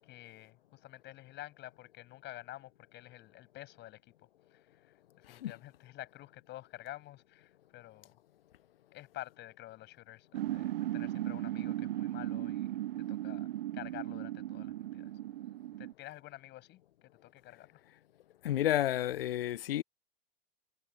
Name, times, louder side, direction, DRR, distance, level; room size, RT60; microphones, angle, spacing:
voice 1, 0.0-4.0 4.5-8.1 8.9-12.7 12.9-15.1 15.8-17.8, left 16 dB, 35° left, 7.5 m, -50 dB
sound 1, 10.3-15.9, right 14 dB, 70° right, 0.4 m, -37 dB
voice 2, 18.4-19.8, left 13 dB, 70° left, 0.7 m, -31 dB
hypercardioid pair, 100°, 30 cm